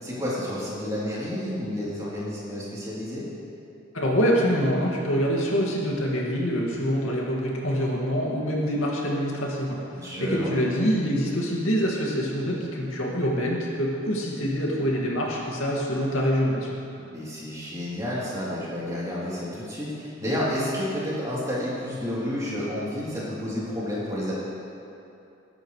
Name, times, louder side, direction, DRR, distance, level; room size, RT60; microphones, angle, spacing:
voice 1, 0.0-3.3 10.0-10.5 17.1-24.3, equal, 15° right, -9 dB, 3.4 m, -30 dB
voice 2, 3.9-16.7, equal, 75° left, -3 dB, 2.3 m, -25 dB
21.0 x 10.5 x 3.3 m, 2.7 s
head